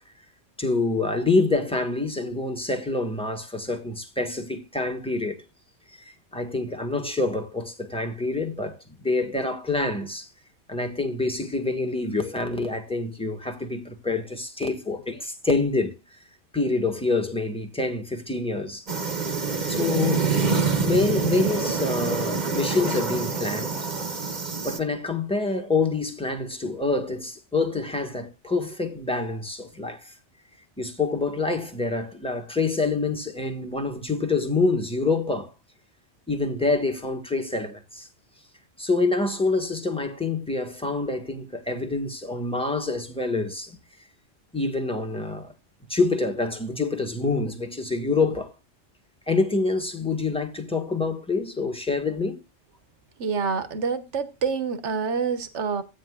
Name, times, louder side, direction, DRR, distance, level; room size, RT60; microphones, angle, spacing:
voice 1, 0.6-5.4 6.0-10.3 10.7-16.0 16.5-18.8 19.7-20.3 20.8-23.9 24.6-30.1 30.8-35.5 36.3-38.1 38.8-43.8 44.5-45.5 45.9-48.5 49.3-52.4, left 3 dB, 5° left, 1.5 m, -26 dB
sound 1, 18.9-24.8, right 4 dB, 35° right, 1.2 m, -26 dB
voice 2, 53.2-55.8, right 5 dB, 65° right, 1.5 m, -27 dB
15.5 x 9.2 x 2.4 m
omnidirectional pair, 1.3 m